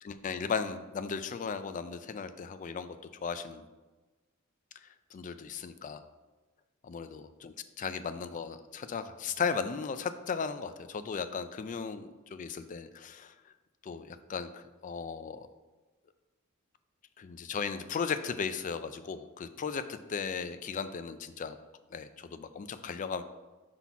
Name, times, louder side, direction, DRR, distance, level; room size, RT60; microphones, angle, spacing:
voice 1, 0.0-3.0 3.2-3.6 5.1-6.0 6.8-13.3 13.8-15.5 17.2-21.6 21.9-23.2, left 6 dB, 40° left, 11 dB, 0.3 m, -36 dB
5.7 x 4.0 x 4.6 m, 1.2 s
head